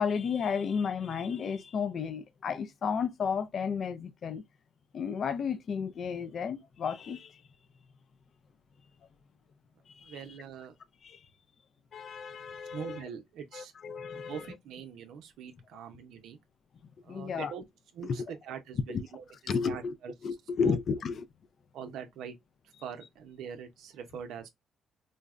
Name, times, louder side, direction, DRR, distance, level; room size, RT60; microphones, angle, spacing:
voice 1, 0.0-4.4 4.9-7.4 10.0-10.2 11.0-11.2 11.9-13.0 13.5-14.6 17.1-17.5 18.0-18.2 18.9-19.0 19.5-19.9 20.2-21.3, left 6 dB, 55° left, 0.4 m, -32 dB
voice 2, 10.0-10.7 12.7-13.7 14.3-16.4 17.0-17.6 17.9-19.2 19.6-20.1 20.6-20.8 21.7-22.4 22.8-24.5, right 8 dB, 85° right, 0.6 m, -43 dB
3.8 x 2.1 x 2.4 m
cardioid pair, 90°, 0 cm